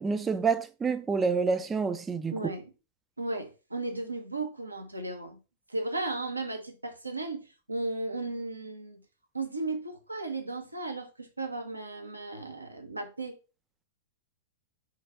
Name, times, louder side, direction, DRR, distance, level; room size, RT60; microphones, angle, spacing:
voice 1, 0.0-2.3, right 5 dB, 15° right, 0.3 m, -28 dB
voice 2, 2.3-2.7 3.2-5.4 5.7-9.0 9.3-13.4, right 2 dB, 85° right, 0.6 m, -35 dB
3.1 x 2.2 x 3.5 m
figure-of-eight pair, 100°, 0 cm